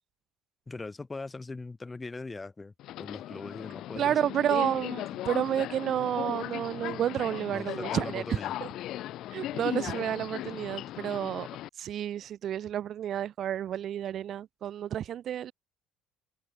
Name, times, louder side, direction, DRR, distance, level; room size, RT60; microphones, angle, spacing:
voice 1, 0.7-4.4 7.5-8.5, left 3 dB, 20° left, 2.7 m, -40 dB
Subway metro underground, 2.8-11.7, left 14 dB, 65° left, 5.6 m, -37 dB
voice 2, 4.0-8.2 8.6-8.7 9.3-11.5 11.8-15.5, right 10 dB, 55° right, 0.9 m, -30 dB
supercardioid pair, 95°, 0 cm